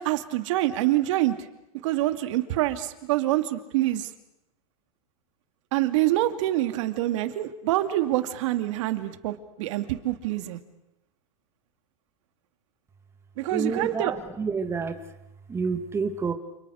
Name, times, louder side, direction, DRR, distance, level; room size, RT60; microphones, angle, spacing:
voice 1, 0.0-1.4 1.8-4.1 5.7-10.6 13.4-14.1, right 15 dB, 60° right, 9 dB, 2.6 m, -26 dB
voice 2, 13.5-15.1 15.5-16.3, right 5 dB, 15° right, 7 dB, 2.3 m, -29 dB
29.0 x 28.5 x 6.5 m, 0.89 s
supercardioid pair, 145°, 18 cm